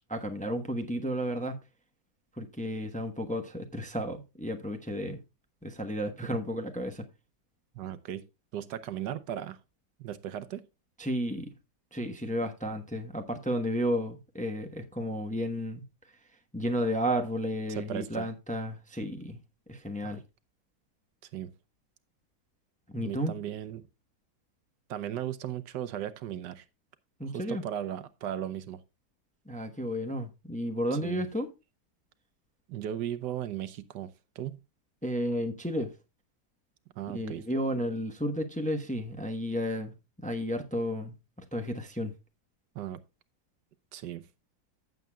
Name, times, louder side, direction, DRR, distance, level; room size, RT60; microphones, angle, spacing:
voice 1, 0.1-1.6 2.4-5.2 5.6-7.0 11.0-11.5 11.9-15.8 16.5-19.4 19.7-20.2 22.9-23.3 27.2-27.6 29.5-31.5 35.0-35.9 37.1-39.9 40.2-41.1 41.5-42.1, equal, 5° left, 0.8 m, -32 dB
voice 2, 7.7-8.3 8.5-9.6 10.0-10.6 17.7-18.3 20.0-20.2 21.3-21.5 23.0-23.9 24.9-26.6 27.3-28.8 30.9-31.3 32.7-34.1 34.3-34.6 37.0-37.5 42.7-43.0 43.9-44.3, right 11 dB, 85° right, 1.4 m, -36 dB
14.5 x 7.5 x 2.3 m
omnidirectional pair, 1.8 m